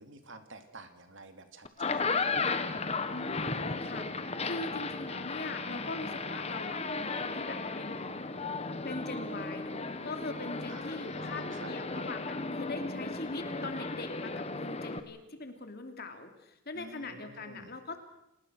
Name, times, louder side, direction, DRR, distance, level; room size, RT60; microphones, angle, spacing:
voice 1, 0.0-2.3 10.7-11.7 16.7-17.7, right 2 dB, 60° right, 7 dB, 2.6 m, -50 dB
sound 1, 1.7-15.0, left 3 dB, 30° left, 1.2 m, -35 dB
voice 2, 3.1-4.1 4.4-8.1 8.8-18.0, left 2 dB, 45° left, 6 dB, 2.7 m, -41 dB
28.5 x 19.5 x 6.3 m, 0.84 s
head